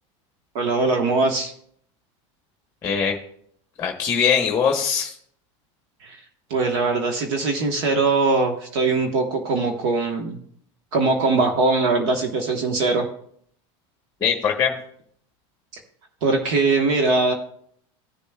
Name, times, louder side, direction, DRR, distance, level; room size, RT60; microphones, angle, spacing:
voice 1, 0.5-1.5 6.0-6.2 6.5-10.4 10.9-13.0 16.2-17.3, right 3 dB, 60° right, 3 dB, 1.3 m, -21 dB
voice 2, 2.8-3.2 3.8-5.2 14.2-14.7, left 7 dB, 15° left, 3 dB, 1.1 m, -21 dB
15.5 x 6.9 x 2.3 m, 0.65 s
supercardioid pair, 150°, 16 cm